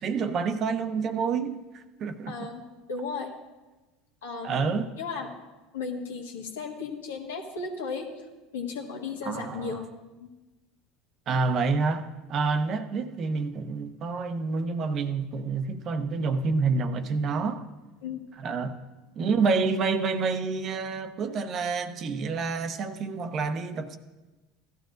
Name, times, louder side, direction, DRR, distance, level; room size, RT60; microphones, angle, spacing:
voice 1, 0.0-2.5 4.4-4.9 9.3-9.8 11.3-17.6 18.4-18.7 19.2-24.0, right 4 dB, 45° right, 0.8 m, -28 dB
voice 2, 2.3-2.6 2.9-3.3 4.2-4.5 5.0-5.3 5.7-8.2 8.5-9.9 10.2-10.3 18.0-18.2, left 4 dB, 85° left, 1.5 m, -35 dB
16.0 x 12.0 x 2.6 m
hypercardioid pair, 80°, 0 cm